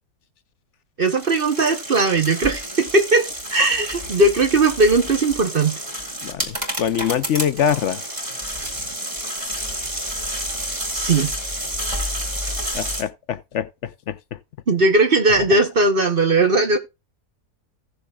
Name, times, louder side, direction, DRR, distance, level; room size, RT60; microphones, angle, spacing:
sound 1, 1.0-13.0, equal, 20° right, 2.3 m, -30 dB
voice 1, 1.0-5.8 10.9-11.3 14.7-16.8, right 2 dB, 40° right, 1.0 m, -18 dB
voice 2, 6.2-8.0 12.7-14.2, left 9 dB, 60° left, 0.8 m, -24 dB
16.5 x 6.8 x 2.3 m
omnidirectional pair, 1.7 m